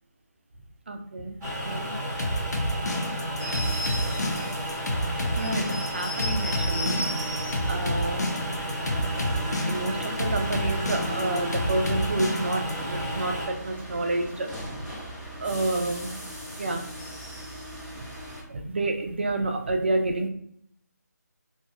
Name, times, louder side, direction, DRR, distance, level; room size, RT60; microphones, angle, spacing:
voice 1, 0.9-1.9 5.2-7.1 7.6-8.3 9.7-14.5 15.4-16.1 16.5-16.9 18.0-18.1 18.5-20.3, right 2 dB, 40° right, 4 dB, 0.4 m, -29 dB
sound 1, 1.4-13.5, equal, 10° right, 0.8 m, -33 dB
sound 2, 2.2-12.7, left 1 dB, 70° left, 0.5 m, -29 dB
sound 3, 3.4-18.4, equal, 35° left, 1.1 m, -38 dB
2.4 x 2.2 x 2.7 m, 0.67 s
figure-of-eight pair, 160°, 9 cm